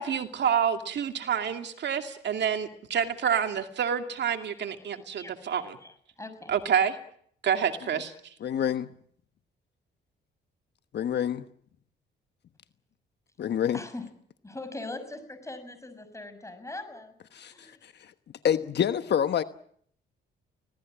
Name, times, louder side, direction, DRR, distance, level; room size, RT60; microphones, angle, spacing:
voice 1, 0.0-5.8 6.5-7.0 7.4-8.1, right 8 dB, 60° right, 6 dB, 2.6 m, -28 dB
voice 2, 5.2-6.5 13.7-14.1 14.4-17.8, left 2 dB, 15° left, 10 dB, 6.4 m, -41 dB
voice 3, 8.4-8.9 10.9-11.5 13.4-13.8 17.3-17.5 18.4-19.4, left 9 dB, 60° left, 10 dB, 1.2 m, -26 dB
25.0 x 18.0 x 8.8 m, 0.65 s
cardioid pair, 90°, 20 cm